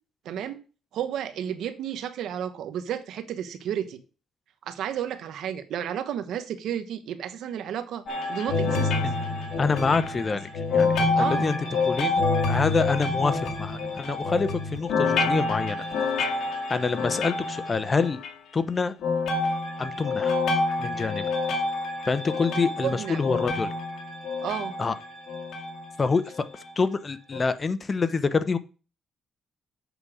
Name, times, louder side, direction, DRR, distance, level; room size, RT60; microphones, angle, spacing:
voice 1, 0.2-0.6 0.9-4.0 4.7-8.0 8.3-8.9 11.1-11.5 22.8-23.2 24.4-24.7, right 9 dB, 80° right, 10 dB, 1.1 m, -32 dB
sound 1, 8.1-18.3 19.0-25.9 26.6-26.7 27.3-27.4, left 3 dB, 75° left, 2.0 m, -27 dB
voice 2, 9.6-11.6 11.9-15.8 16.2-18.2 18.5-19.0 19.8-20.4 20.8-21.2 22.1-23.7 24.8-25.0 26.0-26.3 26.8-28.6, left 4 dB, 35° left, 13 dB, 0.8 m, -26 dB
8.1 x 6.2 x 5.0 m, 0.36 s
cardioid pair, 90°, 0 cm